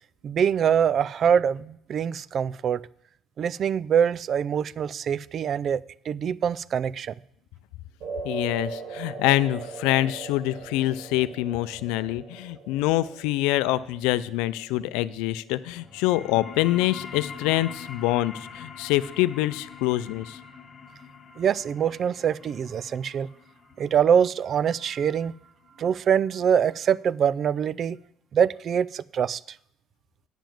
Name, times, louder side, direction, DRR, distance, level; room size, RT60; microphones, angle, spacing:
voice 1, 0.2-2.8 3.4-5.8 6.1-7.1 21.4-23.3 23.8-25.3 25.8-28.0 28.3-29.4, right 8 dB, 45° right, 21 dB, 0.3 m, -24 dB
sound 1, 8.0-16.3, right 4 dB, 65° right, 3.6 m, -40 dB
voice 2, 8.2-20.4, left 16 dB, 85° left, 15 dB, 0.5 m, -25 dB
sound 2, 15.7-26.8, left 6 dB, 30° left, 1.2 m, -44 dB
9.0 x 7.2 x 7.5 m, 0.72 s
cardioid pair, 120°, 0 cm